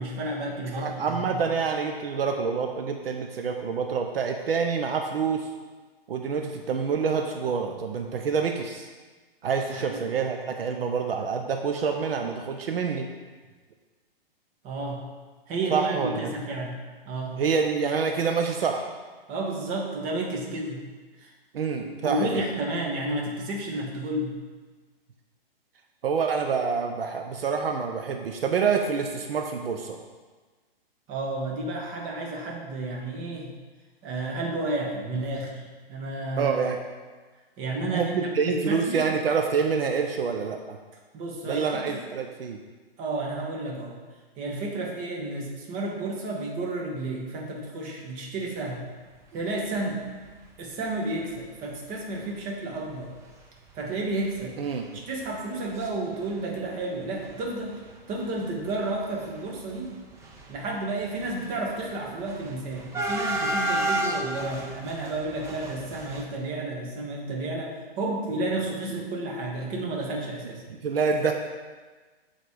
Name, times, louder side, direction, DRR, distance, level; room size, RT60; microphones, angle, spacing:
voice 1, 0.0-1.4 9.7-10.0 14.6-15.0 15.5-16.7 17.1-17.4 19.3-20.9 21.2-21.3 21.8-24.4 31.1-33.5 34.0-35.6 35.9-36.6 37.6-39.1 41.1-42.0 43.0-44.0 44.4-48.9 49.3-50.0 50.6-53.1 53.7-54.6 54.9-57.8 58.1-59.9 60.5-70.6, right 2 dB, 25° right, -1 dB, 1.4 m, -31 dB
voice 2, 0.7-5.5 6.1-8.9 9.4-13.1 15.7-16.3 17.4-18.9 21.5-22.4 26.0-30.0 36.4-36.8 37.9-40.8 41.5-42.6 54.6-55.0 70.8-71.3, right 5 dB, 70° right, 4 dB, 0.8 m, -27 dB
sound 1, 50.3-50.5 51.0-51.1 51.2-51.4 52.2-52.3 52.7-52.9 53.2-53.3 53.7-55.9 56.1-56.9 57.1-66.2, right 1 dB, 10° right, 0.5 m, -33 dB
7.9 x 4.1 x 4.8 m, 1.4 s
hypercardioid pair, 135°, 30 cm